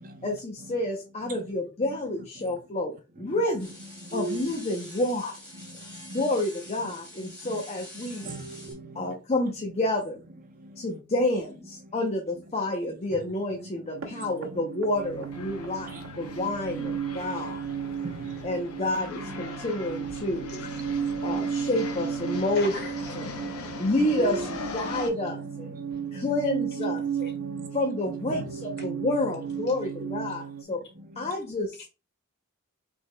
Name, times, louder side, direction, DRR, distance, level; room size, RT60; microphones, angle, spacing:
voice 1, 0.2-3.7 4.1-5.3 6.1-8.3 9.0-10.2 10.8-17.6 18.4-20.5 21.2-22.7 23.1-23.3 23.8-24.4 24.7-25.8 26.1-27.0 27.7-30.8 31.2-31.8, left 1 dB, 30° left, 0.7 m, -29 dB
sound 1, 3.6-8.7, left 1 dB, 5° left, 2.4 m, -46 dB
voice 2, 4.1-4.6 6.1-6.2 8.2-9.0 15.9-16.0 18.0-18.4 19.2-19.4 20.3-20.4 21.3-21.4 24.0-24.7 26.2-26.8 28.3-29.0, right 2 dB, 40° right, 0.6 m, -37 dB
sound 2, 13.9-30.6, right 7 dB, 70° right, 0.9 m, -35 dB
sound 3, 14.9-25.1, left 4 dB, 80° left, 0.8 m, -40 dB
voice 3, 20.6-21.0 22.5-23.1 25.9-26.0 27.2-27.3 29.7-29.8 31.8-31.9, left 3 dB, 50° left, 1.7 m, -41 dB
5.8 x 3.5 x 2.2 m
head